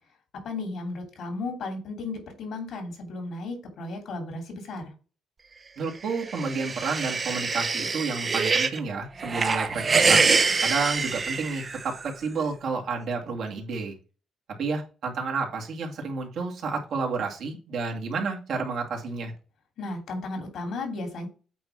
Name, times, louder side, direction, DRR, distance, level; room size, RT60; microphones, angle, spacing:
voice 1, 0.4-4.8 19.8-21.3, left 2 dB, 70° left, 3 dB, 3.0 m, -34 dB
voice 2, 5.8-10.2 10.6-14.0 14.6-19.3, right 4 dB, 65° right, 1 dB, 2.3 m, -30 dB
sound 1, 6.1-8.8 9.2-12.1, right 4 dB, 35° right, 0.9 m, -25 dB
8.5 x 3.0 x 6.1 m, 0.35 s
cardioid pair, 90°, 0 cm